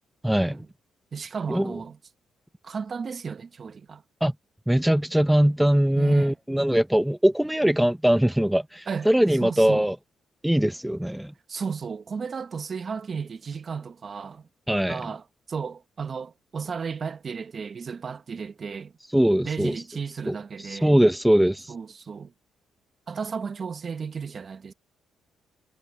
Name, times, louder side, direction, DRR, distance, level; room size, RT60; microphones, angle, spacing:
voice 1, 0.2-0.6 1.5-1.7 4.2-4.3 4.7-10.0 10.4-11.3 14.7-15.0 19.1-19.7 20.3-20.4 20.6-21.7, equal, 5° right, 0.7 m, -21 dB
voice 2, 1.1-2.0 2.6-4.0 6.0-6.4 8.9-9.1 9.4-9.9 11.5-14.5 14.9-18.9 19.4-20.9 21.7-22.3 23.1-24.7, right 5 dB, 45° right, 1.2 m, -34 dB
cardioid pair, 90°, 0 cm